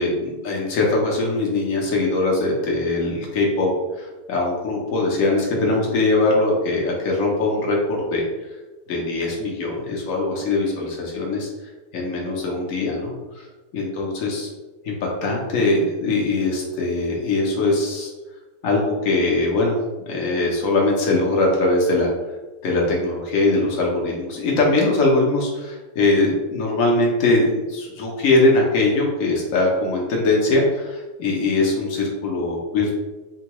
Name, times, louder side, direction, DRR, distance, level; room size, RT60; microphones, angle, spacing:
voice 1, 0.0-3.7 4.0-8.3 8.9-11.5 11.9-13.1 13.7-14.5 14.8-18.1 18.6-19.8 20.1-22.1 22.6-33.0, left 2 dB, 60° left, -2 dB, 1.0 m, -21 dB
3.6 x 2.2 x 2.9 m, 1.1 s
omnidirectional pair, 1.8 m